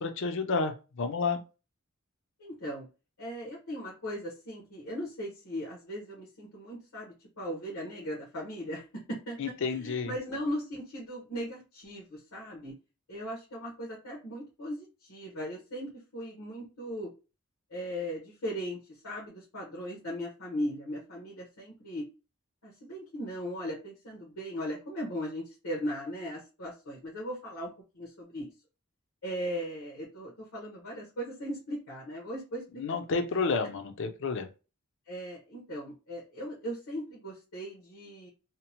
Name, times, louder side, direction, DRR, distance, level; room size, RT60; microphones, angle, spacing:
voice 1, 0.0-1.4 9.4-10.1 32.8-34.5, left 4 dB, 60° left, 8 dB, 0.5 m, -30 dB
voice 2, 2.4-2.9 3.2-8.8 9.1-12.7 13.1-17.1 17.7-18.8 19.0-22.1 22.6-28.5 29.2-33.2 35.1-38.3, equal, 80° left, -3 dB, 0.9 m, -38 dB
2.7 x 2.0 x 2.8 m, 0.31 s
head